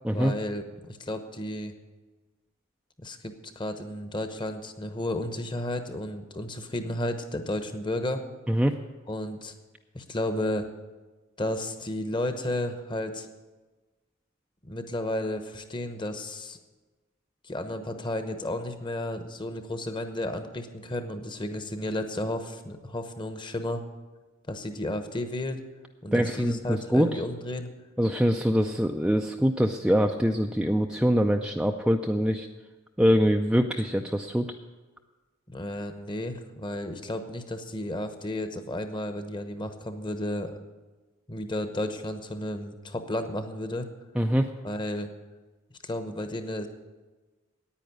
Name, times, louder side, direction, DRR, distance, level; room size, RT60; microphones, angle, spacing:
voice 1, 0.1-1.7 3.0-8.2 9.1-9.5 9.9-10.7 11.4-13.3 14.6-16.6 17.4-23.8 24.5-25.6 26.0-27.7 35.5-40.6 41.3-43.9 44.6-45.1 45.8-46.7, left 1 dB, 20° left, 8 dB, 0.9 m, -33 dB
voice 2, 26.1-27.2 28.0-32.5 33.0-34.5 44.2-44.5, equal, 5° right, 3 dB, 0.4 m, -24 dB
10.0 x 9.2 x 9.3 m, 1.3 s
head